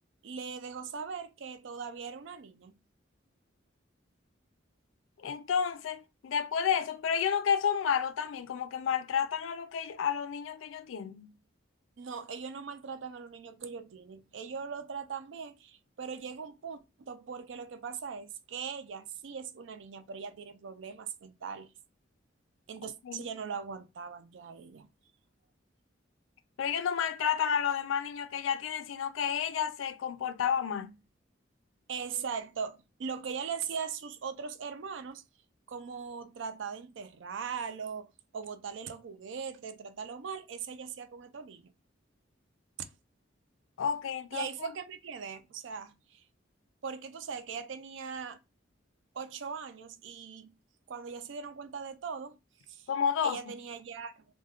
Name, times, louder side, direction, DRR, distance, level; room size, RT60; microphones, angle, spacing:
voice 1, 0.2-2.8 12.0-21.7 22.7-24.9 31.9-35.2 35.7-41.7 42.8-42.9 44.3-46.2 46.8-48.4 49.1-50.5 50.9-52.4 52.7-52.9 53.2-54.2, right 6 dB, 70° right, 0.4 m, -40 dB
voice 2, 5.2-11.3 23.0-23.3 26.6-31.0 43.8-44.5 52.9-53.4, left 7 dB, 85° left, 0.4 m, -31 dB
2.2 x 2.2 x 3.4 m
head